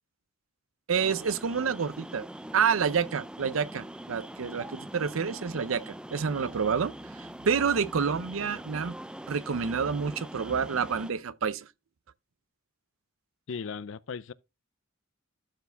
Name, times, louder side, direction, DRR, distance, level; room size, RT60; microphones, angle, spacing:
sound 1, 0.9-11.1, right 1 dB, 5° right, 0.3 m, -43 dB
voice 1, 0.9-2.2 2.5-9.0 9.3-11.7, right 6 dB, 75° right, 0.6 m, -28 dB
voice 2, 13.5-14.3, left 5 dB, 65° left, 0.5 m, -37 dB
12.5 x 4.6 x 3.5 m
head